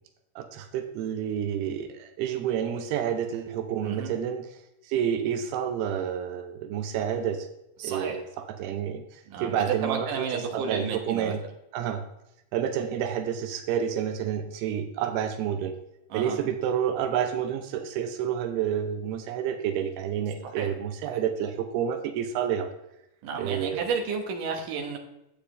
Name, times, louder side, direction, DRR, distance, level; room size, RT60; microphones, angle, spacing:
voice 1, 0.4-4.6 4.8-7.5 7.8-11.4 11.7-12.0 12.5-15.8 16.1-22.7 23.4-23.9, right 9 dB, 85° right, 6 dB, 2.8 m, -29 dB
voice 2, 7.8-8.2 9.3-11.3 16.1-16.4 20.4-20.7 21.1-21.2 23.2-25.0, right 5 dB, 65° right, 2 dB, 2.7 m, -32 dB
12.0 x 8.4 x 3.3 m, 0.85 s
omnidirectional pair, 4.5 m